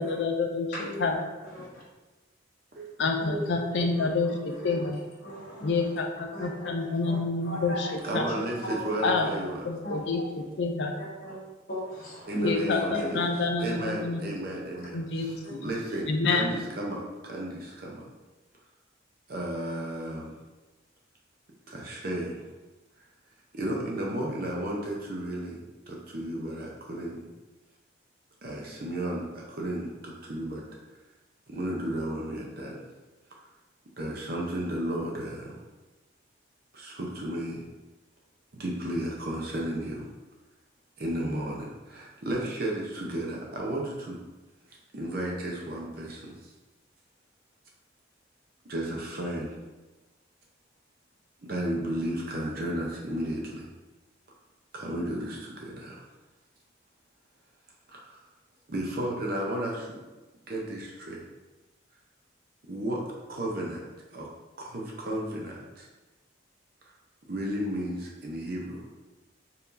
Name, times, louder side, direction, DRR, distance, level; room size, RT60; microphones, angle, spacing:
voice 1, 0.0-0.7 1.0-1.1 3.0-5.0 5.6-7.9 8.1-8.3 9.0-9.3 9.6-10.9 12.4-14.2 14.9-15.6 16.1-16.6, left 3 dB, 65° left, 3 dB, 0.4 m, -28 dB
voice 2, 0.7-1.8 3.2-5.0 5.2-5.9 6.3-9.1 9.8-10.0 11.0-11.4 11.7-13.2 14.7-14.9 15.4-15.5, equal, 45° left, -6 dB, 1.1 m, -38 dB
voice 3, 8.0-9.7 12.3-13.2 13.6-18.0 19.3-20.3 21.7-22.4 23.5-25.6 25.9-27.2 28.4-30.6 31.5-32.8 34.0-35.6 36.7-37.6 38.5-40.1 41.0-44.2 44.9-46.5 48.7-49.5 51.5-53.7 54.7-56.0 57.9-58.2 58.7-60.0 60.5-61.2 62.7-63.0 63.3-63.8 64.1-64.3 64.6-65.9 67.3-68.9, right 1 dB, 50° right, -2 dB, 0.7 m, -33 dB
4.5 x 3.5 x 2.6 m, 1.2 s
head